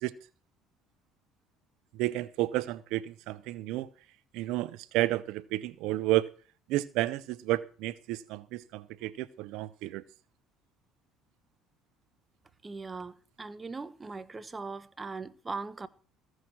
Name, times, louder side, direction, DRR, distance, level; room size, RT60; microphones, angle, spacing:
voice 1, 1.9-3.9 4.3-6.3 6.7-10.0, right 16 dB, 75° right, 0.5 m, -31 dB
voice 2, 12.6-15.9, right 4 dB, 25° right, 1.1 m, -40 dB
15.0 x 6.4 x 7.2 m
supercardioid pair, 80°, 0 cm